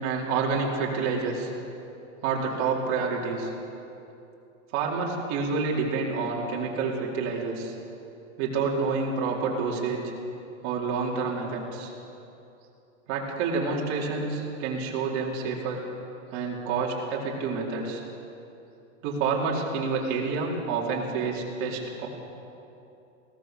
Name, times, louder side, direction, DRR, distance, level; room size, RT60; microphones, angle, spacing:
voice 1, 0.0-1.5 2.2-3.5 4.7-7.7 8.4-10.0 10.6-11.9 13.1-15.8 16.3-18.0 19.0-22.1, right 4 dB, 40° right, -2 dB, 4.5 m, -28 dB
21.0 x 18.0 x 7.0 m, 2.8 s
supercardioid pair, 145°, 39 cm